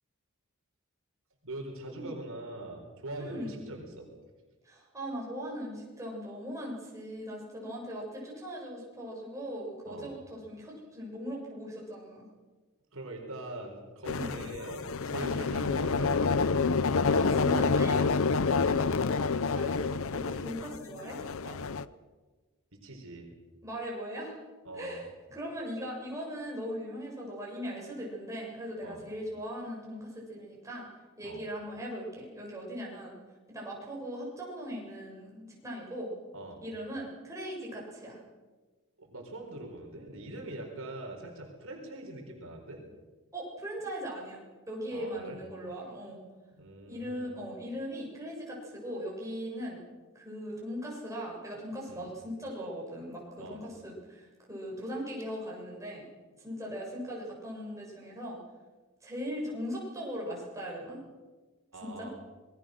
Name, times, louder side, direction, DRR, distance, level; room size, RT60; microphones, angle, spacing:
voice 1, 1.4-4.1 9.9-10.1 12.9-16.6 21.4-21.6 22.7-23.3 24.6-25.0 28.8-29.0 31.2-31.4 36.3-36.6 39.0-42.8 44.9-45.4 46.6-47.3 51.9-52.1 53.4-53.6 61.7-62.1, right 1 dB, 65° right, 1 dB, 4.2 m, -42 dB
voice 2, 3.2-3.6 4.6-12.2 14.1-14.3 15.2-15.6 17.1-19.2 19.5-21.2 23.6-24.3 24.7-30.9 31.2-33.2 33.5-36.1 36.6-38.2 43.3-46.2 46.9-49.8 50.1-56.1 56.4-58.4 59.0-61.0 61.8-62.1, equal, 15° right, -3 dB, 6.8 m, -39 dB
sound 1, 14.1-21.8, left 4 dB, 65° left, 0.7 m, -28 dB
26.5 x 20.5 x 6.4 m, 1.3 s
head